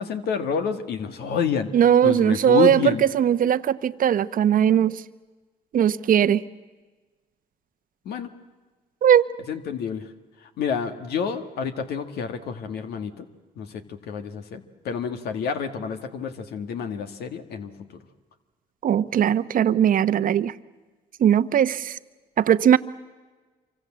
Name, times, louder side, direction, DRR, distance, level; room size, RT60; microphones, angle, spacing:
voice 1, 0.0-1.7 2.0-3.0 8.1-8.3 9.5-10.1 10.6-13.3 13.6-17.7, left 7 dB, 75° left, 8 dB, 1.9 m, -28 dB
voice 2, 1.7-4.9 5.7-6.4 9.0-9.3 18.8-20.5 21.2-22.0 22.4-22.8, right 9 dB, 55° right, 14 dB, 0.9 m, -19 dB
27.0 x 24.5 x 7.6 m, 1.3 s
supercardioid pair, 75°, 17 cm